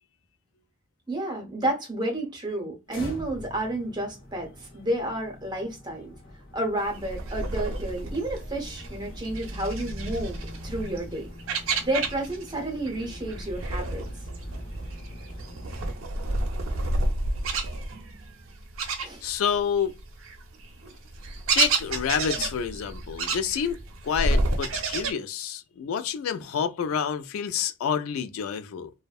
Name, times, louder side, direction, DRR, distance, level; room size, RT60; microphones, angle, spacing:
voice 1, 1.1-6.1 6.5-11.3 11.8-14.0 19.0-19.2, right 1 dB, 20° right, 0.7 m, -31 dB
sound 1, 2.9-15.9, equal, 65° left, 0.8 m, -42 dB
sound 2, 6.9-12.6 12.9-19.6 20.0-25.1, right 3 dB, 85° right, 0.5 m, -30 dB
voice 2, 19.2-19.9 21.5-28.9, left 7 dB, 90° left, 0.3 m, -28 dB
2.6 x 2.1 x 2.3 m
head